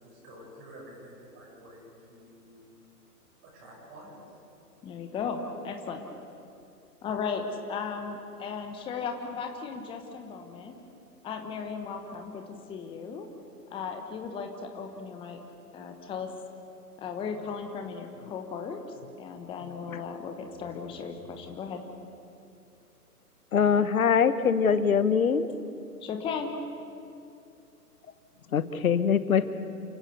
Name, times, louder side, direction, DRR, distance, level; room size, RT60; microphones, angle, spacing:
voice 1, 0.0-2.6 3.4-4.2, right 1 dB, 25° right, -3 dB, 7.8 m, -49 dB
voice 2, 4.8-6.1 7.0-10.8 11.2-12.4 12.7-13.3 13.7-15.4 15.7-16.3 17.0-18.8 19.2-21.8 26.0-26.6, left 5 dB, 10° left, 5 dB, 1.1 m, -36 dB
voice 3, 23.5-25.5 28.5-29.5, left 7 dB, 60° left, 13 dB, 1.4 m, -23 dB
28.5 x 16.0 x 6.8 m, 2.6 s
figure-of-eight pair, 125°, 48 cm